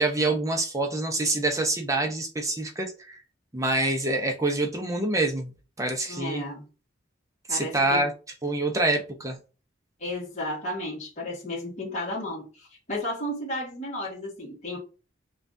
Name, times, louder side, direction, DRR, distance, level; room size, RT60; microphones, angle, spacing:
voice 1, 0.0-3.2 3.5-5.5 5.8-6.4 7.5-8.1 8.4-9.4, right 2 dB, 15° right, 3 dB, 0.7 m, -26 dB
voice 2, 6.1-6.6 7.5-8.0 10.0-14.8, left 1 dB, 35° left, -4 dB, 1.4 m, -33 dB
5.6 x 2.4 x 2.6 m, 0.34 s
head